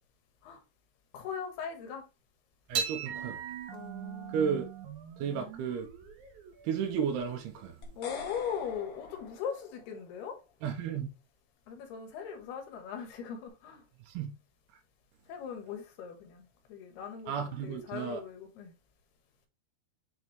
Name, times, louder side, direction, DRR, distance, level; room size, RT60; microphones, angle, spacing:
voice 1, 1.1-2.1 3.7-4.6 5.3-5.5 8.0-10.4 11.7-13.8 15.3-18.7, left 7 dB, 85° left, 3.3 m, -40 dB
sound 1, 2.7-9.3, right 7 dB, 65° right, 2.2 m, -40 dB
voice 2, 2.7-3.4 4.3-4.7 5.2-5.9 6.6-7.8 10.6-11.1 14.1-14.3 17.3-18.2, right 7 dB, 85° right, 2.9 m, -33 dB
sound 2, 7.8-10.1, left 6 dB, 65° left, 1.5 m, -45 dB
7.1 x 4.4 x 3.2 m
omnidirectional pair, 4.5 m